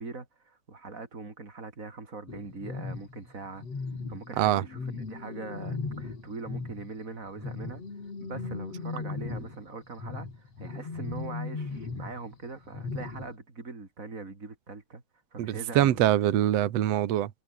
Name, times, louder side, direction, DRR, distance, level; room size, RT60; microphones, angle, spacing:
voice 1, 0.0-3.6 4.1-7.8 8.2-15.0 15.3-16.0, right 3 dB, 25° right, 3.9 m, -42 dB
sound 1, 2.3-6.9 7.3-13.3, left 4 dB, 55° left, 6.5 m, -37 dB
voice 2, 15.4-17.3, right 12 dB, 65° right, 2.3 m, -24 dB
omnidirectional pair, 3.3 m